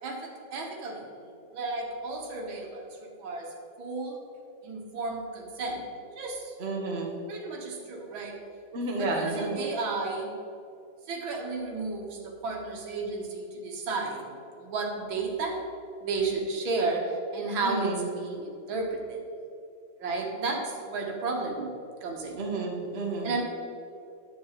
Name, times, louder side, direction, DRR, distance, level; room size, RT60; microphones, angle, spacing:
voice 1, 0.0-3.5 3.8-4.2 4.6-6.5 7.3-8.4 9.0-10.3 11.1-14.3 14.6-15.6 16.0-19.2 20.0-21.7 22.0-22.4 23.2-23.4, right 3 dB, 85° right, 1 dB, 2.1 m, -33 dB
voice 2, 6.6-7.2 8.7-9.6 17.6-18.0 22.4-23.3, right 2 dB, 35° right, 0 dB, 1.3 m, -31 dB
9.6 x 7.8 x 4.0 m, 2.5 s
omnidirectional pair, 2.1 m